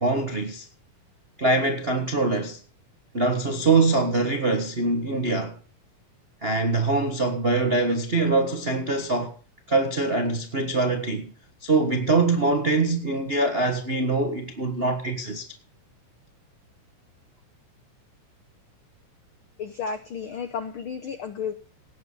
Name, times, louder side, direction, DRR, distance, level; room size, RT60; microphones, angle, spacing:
voice 1, 0.0-0.6 1.4-2.6 3.1-5.6 6.4-9.3 9.7-11.3 11.6-15.5, right 3 dB, 60° right, 0.6 m, -23 dB
voice 2, 19.6-21.5, left 6 dB, 90° left, 1.1 m, -32 dB
18.0 x 8.1 x 5.5 m
omnidirectional pair, 3.7 m